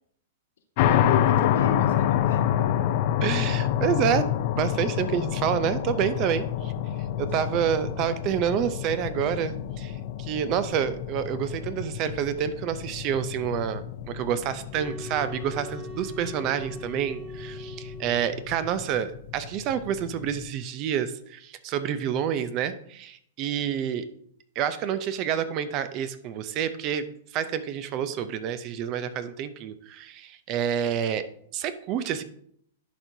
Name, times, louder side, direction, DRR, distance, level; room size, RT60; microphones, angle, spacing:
voice 1, 0.8-2.8, left 6 dB, 80° left, 3 dB, 1.4 m, -33 dB
sound 1, 0.8-20.5, left 11 dB, 45° left, 0.5 m, -28 dB
voice 2, 3.2-4.3 4.5-6.7 7.2-24.1 24.6-31.3 31.5-32.2, right 9 dB, 35° right, 13 dB, 0.5 m, -28 dB
sound 2, 14.7-18.6, equal, 15° right, 1.1 m, -41 dB
11.0 x 4.5 x 2.7 m, 0.67 s
hypercardioid pair, 155°, 0 cm